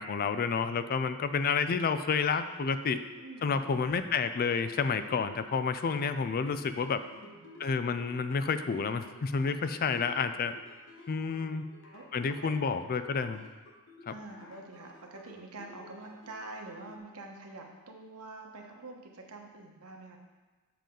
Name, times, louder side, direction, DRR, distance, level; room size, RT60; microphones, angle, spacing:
voice 1, 0.0-3.0 3.4-7.0 7.6-10.5 11.1-11.6 12.1-13.4 14.1-14.2, left 5 dB, 40° left, 11 dB, 0.4 m, -30 dB
sound 1, 2.0-17.0, left 2 dB, 60° left, 1.2 m, -54 dB
voice 2, 3.2-3.9 6.8-7.6 11.2-11.6 11.9-12.0 14.1-20.2, right 2 dB, 80° right, 1 dB, 1.2 m, -47 dB
7.5 x 6.8 x 3.8 m, 1.3 s
head